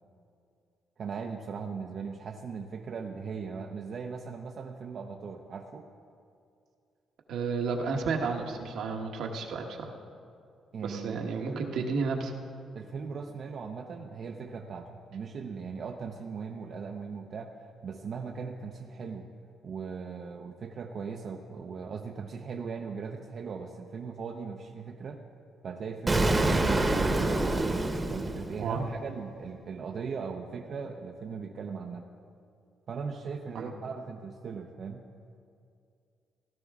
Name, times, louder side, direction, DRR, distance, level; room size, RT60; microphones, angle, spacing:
voice 1, 1.0-5.9 10.7-11.9 12.7-19.3 19.6-25.2 25.6-27.0 28.1-32.1 32.9-35.0, right 5 dB, 55° right, 2 dB, 0.7 m, -39 dB
voice 2, 7.3-9.9 10.8-12.3 28.6-28.9 33.5-33.7, right 4 dB, 75° right, 2 dB, 1.3 m, -32 dB
Explosion, 26.1-29.0, right 2 dB, 25° right, 1.1 m, -26 dB
17.0 x 11.5 x 3.6 m, 2.4 s
cardioid pair, 90°, 0 cm